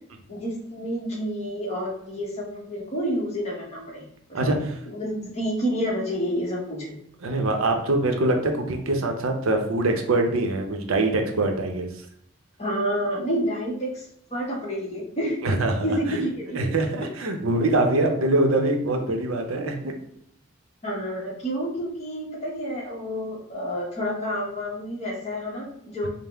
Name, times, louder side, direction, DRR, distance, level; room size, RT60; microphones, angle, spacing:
voice 1, 0.3-4.0 4.3-4.5 4.8-6.9 12.6-15.4 15.8-16.6 20.8-26.1, equal, 30° left, -2 dB, 1.0 m, -29 dB
voice 2, 7.2-11.9 15.4-16.2 16.5-19.9, right 2 dB, 75° right, 4 dB, 0.6 m, -23 dB
5.4 x 2.0 x 3.4 m, 0.69 s
head